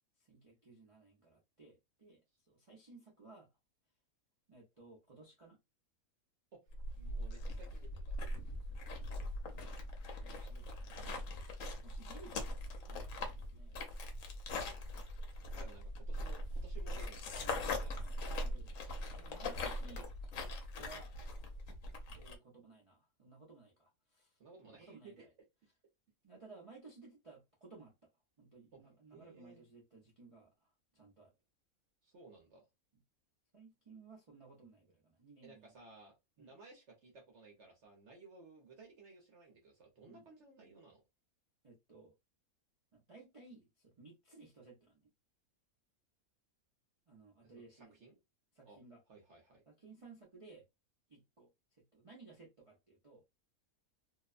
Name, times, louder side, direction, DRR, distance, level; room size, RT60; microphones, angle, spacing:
voice 1, 0.3-2.2 2.5-3.5 4.5-5.6 8.1-8.8 9.4-9.9 10.2-11.0 11.6-14.1 17.4-17.6 18.0-20.1 20.4-21.1 22.1-24.4 24.6-25.3 26.2-28.1 28.4-31.3 33.5-35.7 36.4-36.5 40.1-40.3 41.6-42.1 42.9-45.1 47.1-47.9 48.5-49.0 49.7-50.7 51.1-51.5 51.9-53.3, right 3 dB, 40° right, 0.5 m, -58 dB
sound 1, 6.7-22.3, left 1 dB, 70° left, 1.0 m, -41 dB
voice 2, 6.9-8.2 15.5-17.9 24.4-25.3 28.7-28.8 29.1-29.6 32.0-32.6 35.4-41.0 47.4-48.2 48.6-48.8 49.1-49.6, right 3 dB, 55° right, 1.1 m, -58 dB
2.7 x 2.1 x 2.4 m
omnidirectional pair, 1.5 m